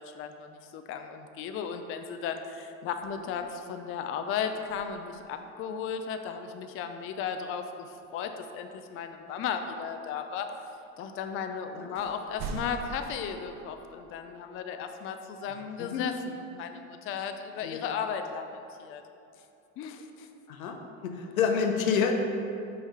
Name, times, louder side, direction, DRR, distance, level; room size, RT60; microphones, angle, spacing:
voice 1, 0.0-10.5 11.0-19.0 19.8-20.3, left 7 dB, 35° left, 6 dB, 0.4 m, -35 dB
sound 1, 3.0-3.8 4.6-5.5 9.0-9.1 11.2-11.3 11.9-13.1, right 5 dB, 45° right, 0.6 m, -42 dB
voice 2, 15.8-16.1 17.6-17.9 20.5-20.8 21.0-22.1, left 6 dB, 85° left, 3 dB, 0.8 m, -28 dB
5.4 x 3.3 x 5.5 m, 2.6 s
hypercardioid pair, 85°, 40 cm